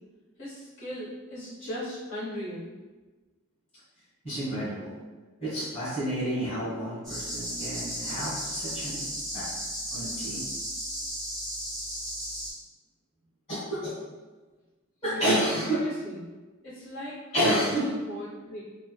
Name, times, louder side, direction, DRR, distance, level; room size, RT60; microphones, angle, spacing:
voice 1, 0.4-2.7 15.0-16.3 16.6-17.2 17.5-18.6, equal, 60° left, -10 dB, 1.1 m, -38 dB
voice 2, 4.2-4.9 5.4-9.0 9.3-9.5 9.9-10.4 13.5-13.9 15.0-15.8 17.3-17.9, equal, 30° left, -10 dB, 1.2 m, -29 dB
sound 1, 7.0-12.5, equal, ahead, 0.8 m, -35 dB
3.3 x 2.1 x 2.2 m, 1.3 s
head